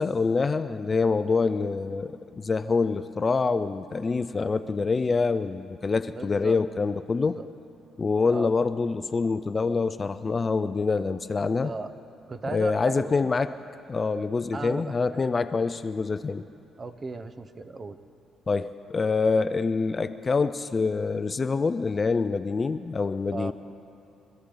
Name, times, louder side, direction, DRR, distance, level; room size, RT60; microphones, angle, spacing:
voice 1, 0.0-7.4 8.0-11.7 12.5-13.5 13.9-16.5 18.5-23.5, left 4 dB, 35° left, 12 dB, 0.4 m, -26 dB
voice 2, 6.1-6.6 7.2-7.5 8.3-8.5 11.6-11.9 12.3-13.3 14.5-15.2 16.8-18.0 23.3-23.5, right 3 dB, 35° right, 11 dB, 0.9 m, -36 dB
25.0 x 14.5 x 3.9 m, 2.6 s
cardioid pair, 90°, 0 cm